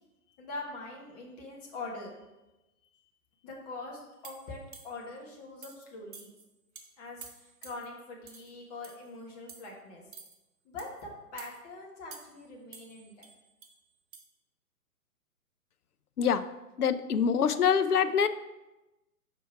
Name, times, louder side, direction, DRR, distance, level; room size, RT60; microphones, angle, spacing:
voice 1, 0.4-2.1 3.4-6.3 7.0-10.0 10.6-13.3, left 2 dB, 25° left, -1 dB, 1.3 m, -43 dB
sound 1, 4.2-5.1 5.6-5.8 6.1-6.4 6.7-6.9 7.2-7.9 8.3-8.5 8.8-9.1 9.5-9.7 10.1-10.4 10.8-11.0 11.4-11.6 12.1-12.4 12.7-13.7 14.1-14.2, right 5 dB, 60° right, 1.3 m, -50 dB
voice 2, 16.8-18.3, left 7 dB, 75° left, 11 dB, 0.6 m, -25 dB
5.0 x 4.7 x 5.8 m, 1.0 s
figure-of-eight pair, 125°, 46 cm